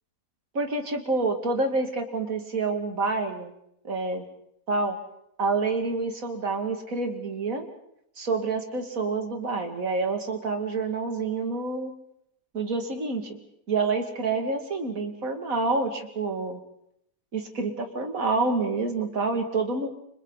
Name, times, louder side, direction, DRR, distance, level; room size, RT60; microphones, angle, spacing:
voice 1, 0.5-3.5 3.8-4.2 4.7-5.0 5.4-7.7 8.2-11.9 12.5-13.4 13.7-16.6 17.3-19.9, right 3 dB, 70° right, 4 dB, 2.9 m, -28 dB
30.0 x 26.0 x 4.1 m, 0.74 s
omnidirectional pair, 1.5 m